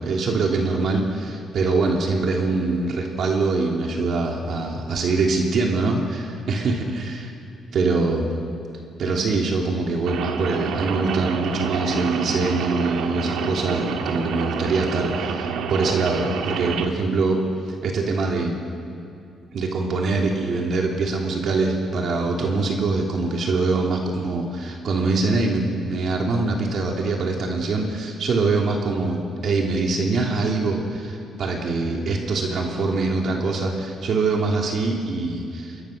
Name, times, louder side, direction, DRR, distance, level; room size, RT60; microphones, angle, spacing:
voice 1, 0.0-7.3 7.7-8.3 9.0-17.4 17.8-18.6 19.5-35.8, right 3 dB, 60° right, 0 dB, 3.0 m, -23 dB
Rain, 10.1-16.9, right 6 dB, 85° right, 1.7 m, -28 dB
27.0 x 22.0 x 6.6 m, 2.6 s
cardioid pair, 90°, 0 cm